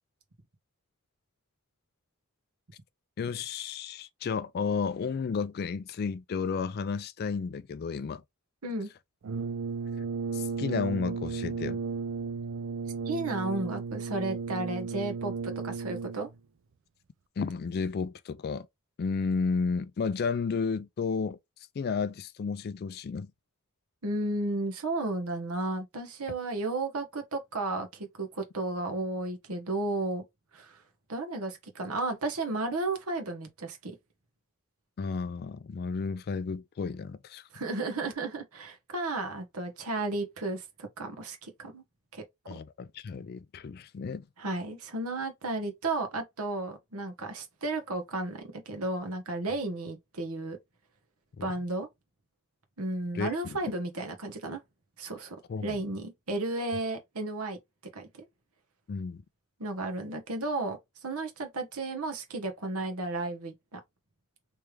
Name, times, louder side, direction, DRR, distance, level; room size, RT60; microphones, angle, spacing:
voice 1, 3.2-8.2 10.3-11.8 17.4-18.7 19.0-21.4 21.8-23.3 35.0-37.4 42.5-44.2 51.4-51.5 53.1-53.6 55.5-55.8 58.9-59.2, left 5 dB, 45° left, 0.3 m, -32 dB
Brass instrument, 9.2-16.4, right 5 dB, 55° right, 0.4 m, -34 dB
voice 2, 13.0-16.3 24.0-30.2 30.5-30.8 31.1-34.0 37.5-41.8 42.1-42.5 44.4-50.6 51.4-51.9 52.8-54.6 55.0-55.4 55.6-57.6 57.9-58.2 59.6-63.8, right 2 dB, 75° right, 1.2 m, -33 dB
3.3 x 3.2 x 3.2 m
head